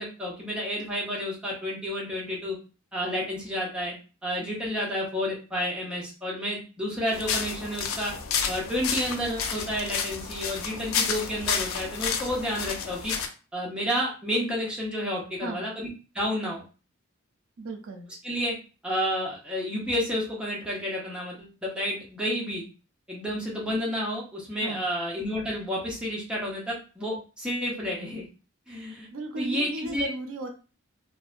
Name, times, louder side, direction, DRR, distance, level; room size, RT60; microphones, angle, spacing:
voice 1, 0.0-2.6 2.9-3.9 4.2-8.1 8.5-13.1 13.5-15.9 16.1-16.6 18.2-18.5 18.8-22.6 23.1-28.2 28.7-29.1 29.4-30.1, equal, 5° right, -4 dB, 0.7 m, -30 dB
sound 1, 7.1-13.3, left 6 dB, 80° left, 0.4 m, -31 dB
voice 2, 17.6-18.1 24.6-24.9 29.1-30.5, right 2 dB, 75° right, 4 dB, 0.4 m, -36 dB
2.6 x 2.1 x 2.4 m, 0.35 s
head